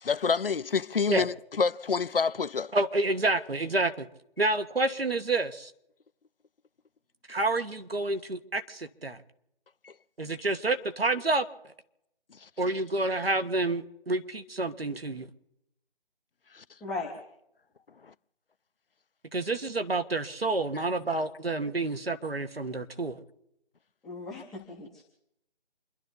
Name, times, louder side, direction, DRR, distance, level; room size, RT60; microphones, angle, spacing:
voice 1, 0.0-2.7 9.8-9.9 16.5-16.6, left 5 dB, 70° left, 0.7 m, -27 dB
voice 2, 2.7-4.1 4.4-5.7 7.3-9.2 10.2-11.4 12.6-15.3 19.3-23.2, right 2 dB, 75° right, 1.8 m, -29 dB
voice 3, 16.8-17.1 24.0-25.0, left 3 dB, ahead, 0.6 m, -37 dB
28.5 x 11.5 x 4.0 m
figure-of-eight pair, 150°, 30 cm